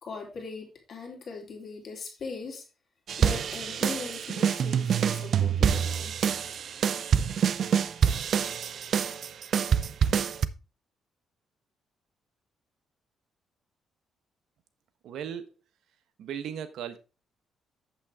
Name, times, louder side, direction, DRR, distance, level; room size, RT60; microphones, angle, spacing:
voice 1, 0.0-2.6 3.2-6.1, left 4 dB, 50° left, 3.1 m, -40 dB
sound 1, 3.1-10.5, right 7 dB, 60° right, 0.6 m, -26 dB
voice 2, 15.0-15.5 16.2-17.0, right 8 dB, 75° right, 1.2 m, -36 dB
8.4 x 7.5 x 3.5 m
cardioid pair, 90°, 0 cm